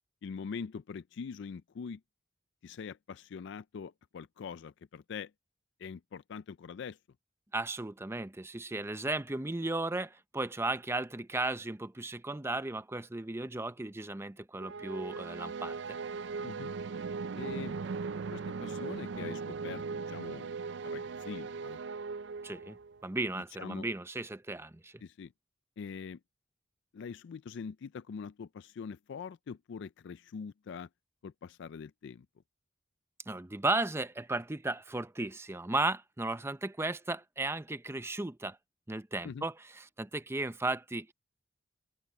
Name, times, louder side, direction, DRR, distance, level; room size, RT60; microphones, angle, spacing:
voice 1, 0.2-2.0 2.6-5.3 5.8-7.0 16.4-16.7 17.4-17.8 18.3-20.5 20.8-21.8 23.6-23.9 25.0-25.3 25.8-26.2 26.9-30.9 31.2-32.3 39.2-39.5, left 6 dB, 65° left, 0.4 m, -43 dB
voice 2, 7.5-16.0 22.4-25.0 33.3-38.6 38.9-41.1, right 2 dB, 15° right, 0.6 m, -35 dB
sound 1, 14.6-23.0, right 4 dB, 65° right, 0.4 m, -39 dB
open air
head